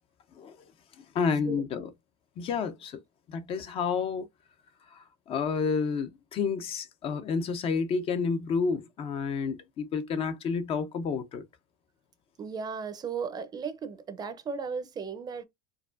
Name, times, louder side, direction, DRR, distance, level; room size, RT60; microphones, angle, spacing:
voice 1, 1.1-1.9 2.4-3.0 3.3-4.2 4.9-11.4, left 5 dB, 35° left, 0.6 m, -30 dB
voice 2, 12.4-15.4, right 5 dB, 25° right, 0.6 m, -35 dB
4.7 x 2.4 x 2.4 m
supercardioid pair, 140°, 16 cm